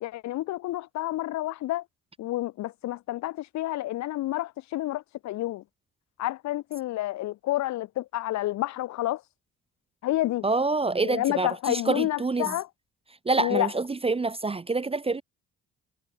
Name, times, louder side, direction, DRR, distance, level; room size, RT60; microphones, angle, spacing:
voice 1, 0.0-1.8 2.2-5.6 6.2-9.2 10.0-10.5 11.0-12.7 13.4-13.7, left 15 dB, 65° left, 0.5 m, -29 dB
voice 2, 10.4-12.5 13.3-15.2, right 3 dB, 20° right, 0.7 m, -26 dB
cardioid pair, 90°, 30 cm